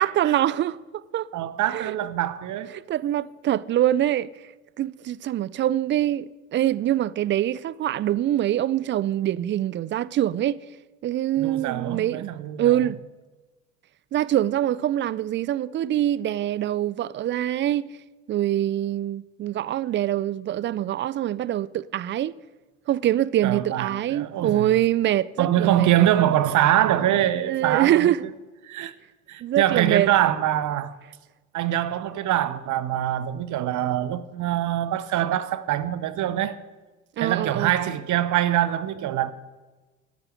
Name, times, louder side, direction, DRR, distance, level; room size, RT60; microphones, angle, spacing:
voice 1, 0.0-1.3 1.7-1.9 2.7-4.3 4.8-10.6 11.0-12.3 12.6-13.0 14.1-17.9 18.3-22.3 22.9-26.0 27.4-28.2 29.4-30.1 37.2-37.7, right 12 dB, 30° right, 0.4 m, -24 dB
voice 2, 1.3-2.7 11.4-12.8 23.4-24.7 25.4-28.1 28.6-28.9 29.3-30.9 31.5-36.6 37.2-39.3, right 12 dB, 50° right, 0.9 m, -24 dB
11.0 x 9.1 x 6.5 m
hypercardioid pair, 65°, 40 cm